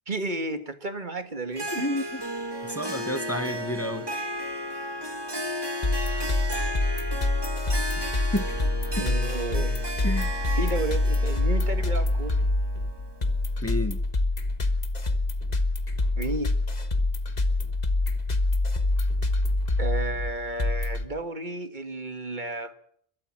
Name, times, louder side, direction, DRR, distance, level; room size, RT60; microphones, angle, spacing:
voice 1, 0.1-1.9 8.9-9.8 10.6-12.4 16.2-16.5 19.8-22.7, right 2 dB, 50° right, 1.9 m, -32 dB
Harp, 1.5-13.4, equal, 25° right, 2.0 m, -34 dB
voice 2, 1.7-2.0 2.6-4.1 8.0-8.5 9.0-9.1 10.0-10.5 13.6-14.0, left 1 dB, 15° left, 1.3 m, -30 dB
sound 1, 5.8-21.0, left 2 dB, 45° left, 1.6 m, -26 dB
30.0 x 13.0 x 7.5 m
omnidirectional pair, 1.0 m